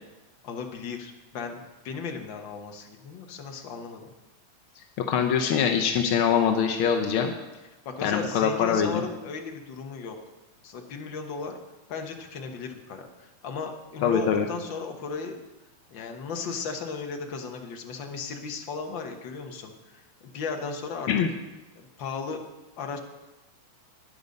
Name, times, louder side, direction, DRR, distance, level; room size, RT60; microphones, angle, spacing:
voice 1, 0.4-4.1 7.8-10.2 10.6-11.6 11.9-15.4 15.9-21.1 21.7-22.4 22.8-23.0, left 5 dB, 55° left, 4 dB, 1.5 m, -36 dB
voice 2, 5.1-7.3 8.0-9.0 14.0-14.5 21.1-21.3, left 7 dB, 80° left, 4 dB, 1.2 m, -23 dB
12.0 x 10.0 x 5.3 m, 1.1 s
omnidirectional pair, 3.3 m